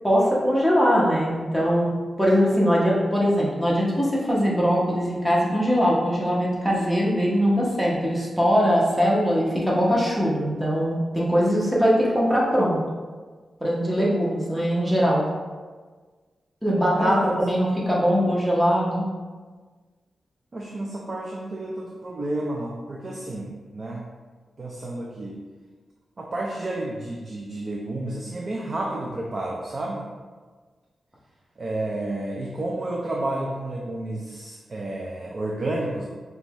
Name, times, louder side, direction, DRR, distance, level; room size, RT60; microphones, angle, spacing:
voice 1, 0.0-1.9 2.2-12.8 13.6-15.2 16.6-19.0, equal, 5° right, -6 dB, 0.9 m, -21 dB
voice 2, 16.9-17.3 20.5-24.0 24.6-25.4 26.2-30.1 31.6-36.0, right 1 dB, 35° right, -2 dB, 0.4 m, -31 dB
5.3 x 2.3 x 3.0 m, 1.4 s
wide cardioid pair, 130°, 0 cm